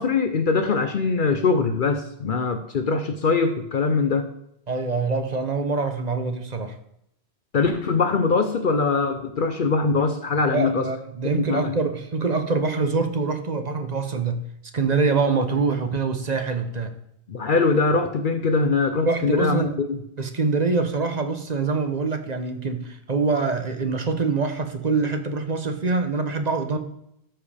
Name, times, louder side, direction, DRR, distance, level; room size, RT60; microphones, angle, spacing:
voice 1, 0.0-4.3 7.5-10.8 11.5-11.7 17.3-20.0, left 4 dB, 55° left, 7 dB, 0.8 m, -22 dB
voice 2, 4.7-6.8 10.5-14.4 14.7-16.9 19.1-19.7 20.2-26.8, right 4 dB, 45° right, 7 dB, 1.0 m, -24 dB
13.0 x 7.6 x 3.4 m, 0.77 s
omnidirectional pair, 1.1 m